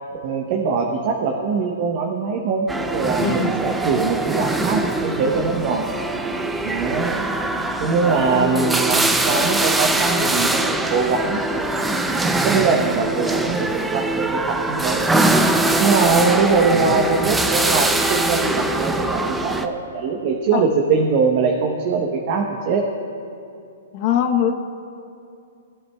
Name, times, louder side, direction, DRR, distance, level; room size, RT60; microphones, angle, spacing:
voice 1, 0.2-2.7 2.9-5.8 6.6-7.3 7.8-11.7 12.4-15.1 15.8-22.8, right 4 dB, 40° right, 1 dB, 0.9 m, -22 dB
sound 1, 2.7-19.7, right 2 dB, 5° right, 0.5 m, -22 dB
voice 2, 3.2-3.5 8.3-8.7 20.5-20.6 23.9-24.5, left 9 dB, 40° left, 5 dB, 0.8 m, -22 dB
18.5 x 9.5 x 2.3 m, 2.6 s
hypercardioid pair, 155°, 0 cm